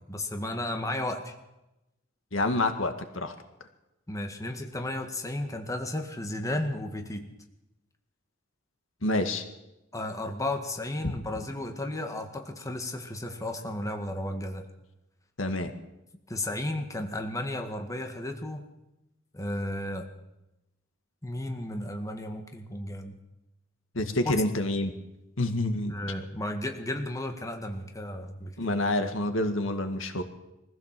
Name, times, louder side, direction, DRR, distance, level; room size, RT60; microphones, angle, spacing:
voice 1, 0.1-1.3 4.1-7.3 9.9-14.6 16.3-18.6 19.3-20.1 21.2-23.2 24.2-24.3 25.9-28.8, left 1 dB, 15° left, 4 dB, 1.9 m, -33 dB
voice 2, 2.3-3.3 9.0-9.4 11.0-11.2 15.4-15.7 23.9-24.9 25.4-25.9 28.6-30.2, left 1 dB, 75° left, 7 dB, 2.1 m, -27 dB
23.0 x 15.5 x 7.7 m, 0.95 s
head